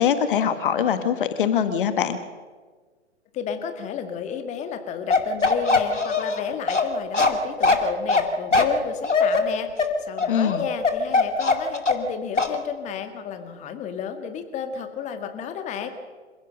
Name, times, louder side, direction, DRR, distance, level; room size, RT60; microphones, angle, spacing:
voice 1, 0.0-2.2 10.3-10.6, left 8 dB, 45° left, 10 dB, 1.6 m, -22 dB
voice 2, 3.3-15.9, left 7 dB, 20° left, 8 dB, 1.9 m, -32 dB
Bark, 5.1-12.1 12.4-12.6, left 3 dB, 85° left, 2.5 m, -21 dB
27.5 x 16.0 x 6.6 m, 1.5 s
figure-of-eight pair, 115°, 35 cm